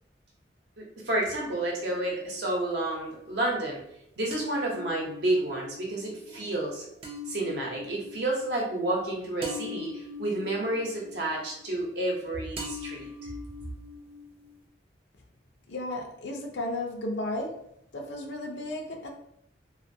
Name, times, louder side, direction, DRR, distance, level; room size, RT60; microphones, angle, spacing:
voice 1, 0.8-3.8 4.2-6.8 7.3-13.3, right 1 dB, 65° right, -2 dB, 0.8 m, -30 dB
sound 1, 1.8-2.7 4.3-12.2 12.6-14.7, left 3 dB, 30° right, 0.4 m, -42 dB
voice 2, 15.7-17.5 17.9-19.1, left 1 dB, 75° left, 2 dB, 0.6 m, -34 dB
2.6 x 2.5 x 2.7 m, 0.78 s
head